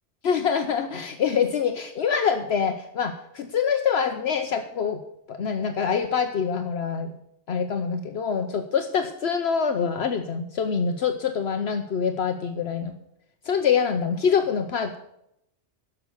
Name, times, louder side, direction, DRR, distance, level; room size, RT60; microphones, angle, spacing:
voice 1, 0.2-5.0 5.3-7.1 7.5-12.9 13.4-15.0, left 6 dB, 70° left, 7 dB, 1.1 m, -25 dB
11.5 x 6.8 x 8.0 m, 0.79 s
omnidirectional pair, 1.1 m